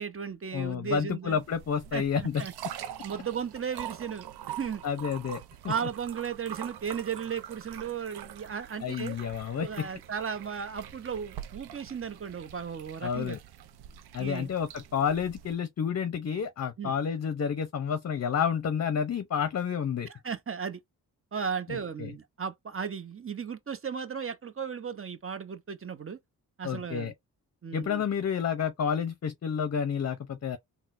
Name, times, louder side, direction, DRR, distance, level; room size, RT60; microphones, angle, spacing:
voice 1, 0.0-1.4 1.9-2.5 3.0-4.3 4.6-4.8 5.7-9.2 9.6-13.4 14.2-14.5 16.8-16.9 20.1-20.8 21.3-26.2 26.6-27.1 27.6-28.0, right 7 dB, 35° right, 0.7 m, -35 dB
voice 2, 0.5-2.4 4.8-5.7 8.8-9.9 13.0-13.4 14.1-20.1 21.7-22.1 26.6-27.1 27.7-30.6, left 7 dB, 40° left, 0.6 m, -30 dB
sound 1, 1.3-15.5, right 10 dB, 75° right, 0.6 m, -44 dB
3.7 x 2.2 x 2.5 m
supercardioid pair, 45°, 39 cm